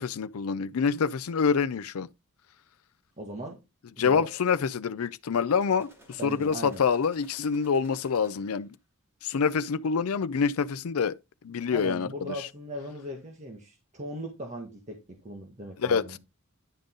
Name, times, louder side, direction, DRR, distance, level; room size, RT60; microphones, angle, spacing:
voice 1, 0.0-2.1 4.0-8.7 9.2-11.2 11.4-12.5 15.8-16.2, left 6 dB, 80° left, 0.5 m, -26 dB
voice 2, 3.2-3.6 4.0-4.3 6.2-6.8 11.7-16.2, right 1 dB, 35° right, 1.7 m, -39 dB
sound 1, 5.6-8.8, equal, 10° right, 2.3 m, -56 dB
10.5 x 5.3 x 3.8 m
head